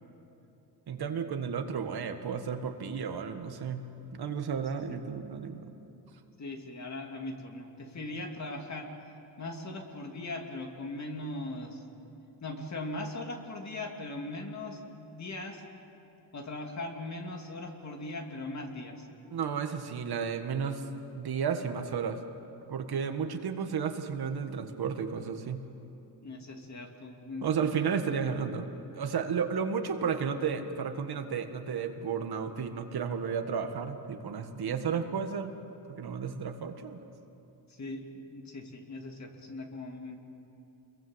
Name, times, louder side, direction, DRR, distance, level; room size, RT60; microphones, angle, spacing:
voice 1, 0.9-3.8 4.1-5.7 19.3-20.9 21.1-22.2 22.7-25.6 27.4-35.5 36.0-37.0, right 6 dB, 65° right, 6 dB, 1.9 m, -33 dB
voice 2, 6.4-8.9 9.4-11.8 12.4-15.6 16.3-19.1 26.2-27.5 37.7-40.2, left 2 dB, 40° left, 2 dB, 2.9 m, -39 dB
28.5 x 22.0 x 8.1 m, 2.9 s
cardioid pair, 135°, 42 cm